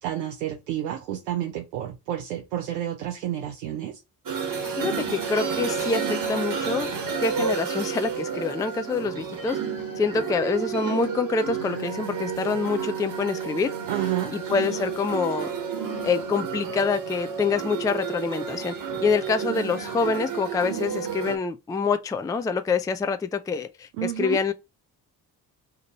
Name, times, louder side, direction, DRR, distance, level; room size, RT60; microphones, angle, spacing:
voice 1, 0.0-4.0 13.9-14.4 24.0-24.4, right 11 dB, 85° right, 0.5 m, -30 dB
sound 1, 4.3-21.4, right 6 dB, 45° right, 1.2 m, -31 dB
voice 2, 4.8-6.9 7.2-9.6 10.0-13.7 14.3-15.5 16.0-18.7 19.0-24.5, left 5 dB, 10° left, 0.3 m, -26 dB
2.8 x 2.5 x 4.1 m
hypercardioid pair, 40°, 48 cm